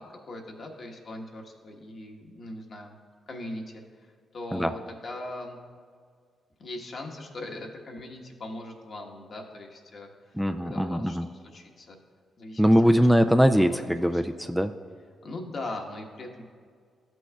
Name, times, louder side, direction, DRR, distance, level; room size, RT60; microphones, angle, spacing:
voice 1, 0.0-3.0 3.3-5.6 6.6-10.1 10.6-11.2 11.5-12.0 12.4-13.1 13.5-14.2 15.2-16.5, left 2 dB, 55° left, 1 dB, 1.2 m, -40 dB
voice 2, 10.3-11.3 12.6-14.7, equal, 5° right, 7 dB, 0.4 m, -21 dB
13.0 x 6.2 x 2.3 m, 2.1 s
supercardioid pair, 50°, 0 cm